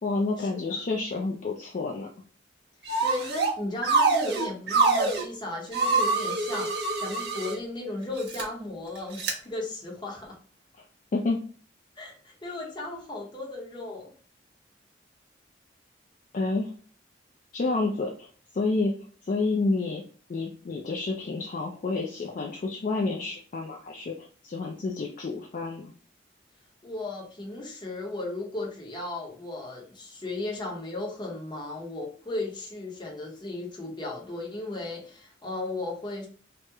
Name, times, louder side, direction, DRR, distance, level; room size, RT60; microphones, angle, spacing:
voice 1, 0.0-2.1 10.8-10.9 11.1-11.4 16.3-16.7 17.5-18.3 18.5-18.9 19.2-20.0 20.3-25.9, left 3 dB, 45° left, 1 dB, 0.3 m, -29 dB
sound 1, 2.9-3.5 3.8-5.2 5.7-7.6 8.2-8.4 9.2-9.3, right 3 dB, 55° right, 0.6 m, -25 dB
voice 2, 3.0-10.4 12.0-14.1 26.8-36.3, left 2 dB, 25° left, -1 dB, 0.7 m, -35 dB
2.9 x 2.0 x 3.4 m, 0.44 s
head